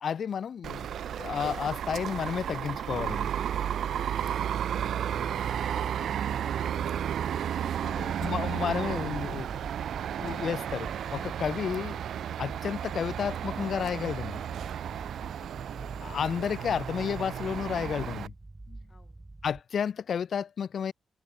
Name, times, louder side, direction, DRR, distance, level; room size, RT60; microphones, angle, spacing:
voice 1, 0.0-3.3 7.8-9.5 10.2-12.0 12.4-14.4 16.0-18.3 18.7-18.8 19.4-20.9, left 7 dB, 65° left, 0.3 m, -32 dB
sound 1, 0.6-18.3, right 9 dB, 70° right, 0.4 m, -33 dB
Ambiente Radhzs, 4.7-19.6, right 2 dB, 20° right, 1.4 m, -47 dB
voice 2, 14.7-15.8 18.9-19.3, left 3 dB, 30° left, 5.0 m, -61 dB
supercardioid pair, 50°, 0 cm